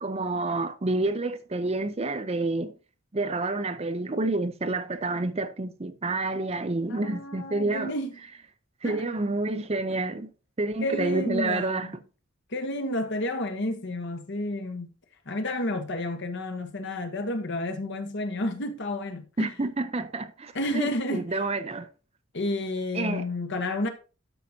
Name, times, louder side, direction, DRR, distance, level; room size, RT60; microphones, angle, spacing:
voice 1, 0.0-2.7 3.1-7.9 8.8-10.3 10.6-11.9 19.4-21.9 22.9-23.2, right 2 dB, 30° right, 0.6 m, -29 dB
voice 2, 6.9-8.2 8.8-9.0 10.8-12.0 12.5-14.9 15.3-19.5 20.5-21.3 22.3-23.9, left 1 dB, 55° left, 1.2 m, -31 dB
12.5 x 5.7 x 2.8 m
head